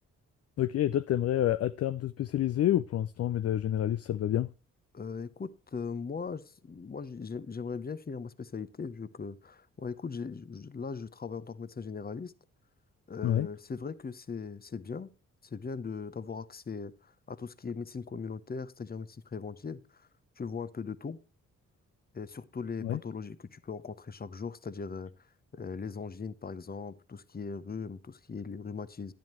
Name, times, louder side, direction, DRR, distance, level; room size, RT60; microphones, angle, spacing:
voice 1, 0.6-4.5 13.2-13.5 22.8-23.0, left 12 dB, 45° left, 0.4 m, -28 dB
voice 2, 4.9-12.3 13.1-15.1 15.4-20.1 20.4-21.2 22.1-25.1 25.5-29.1, left 5 dB, 25° left, 0.8 m, -39 dB
10.5 x 10.5 x 3.0 m
hypercardioid pair, 40°, 36 cm